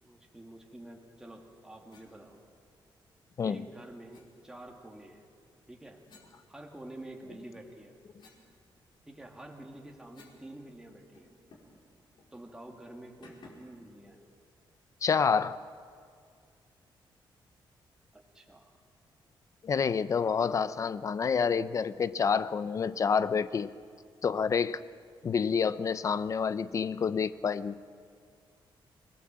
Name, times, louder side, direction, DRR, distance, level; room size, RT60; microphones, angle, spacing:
voice 1, 0.0-2.4 3.4-5.3 5.7-6.0 6.5-7.9 9.1-11.3 12.3-14.3 18.1-18.8, right 1 dB, 5° right, 0 dB, 2.2 m, -48 dB
sound 1, 1.9-2.1 4.1-4.3 6.1-7.1 7.6-10.5 10.7-10.8 11.1-11.8 12.2-12.3 13.2-13.8, left 3 dB, 65° left, 4.9 m, -59 dB
voice 2, 15.0-15.6 19.6-23.7 24.2-24.8 25.2-27.8, left 6 dB, 40° left, 15 dB, 0.6 m, -28 dB
26.5 x 19.0 x 7.6 m, 2.2 s
wide cardioid pair, 155°, 9 cm